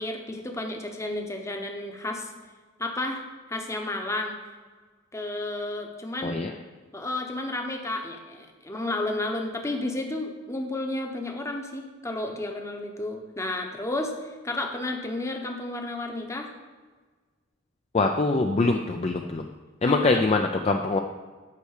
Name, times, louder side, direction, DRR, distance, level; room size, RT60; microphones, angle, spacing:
voice 1, 0.0-2.3 2.8-3.2 3.5-4.4 5.1-6.4 6.9-16.5 19.8-20.3, left 2 dB, 15° left, 3 dB, 0.9 m, -32 dB
voice 2, 17.9-19.4 19.8-21.0, left 3 dB, 30° left, 4 dB, 0.4 m, -23 dB
8.4 x 4.6 x 6.5 m, 1.4 s
head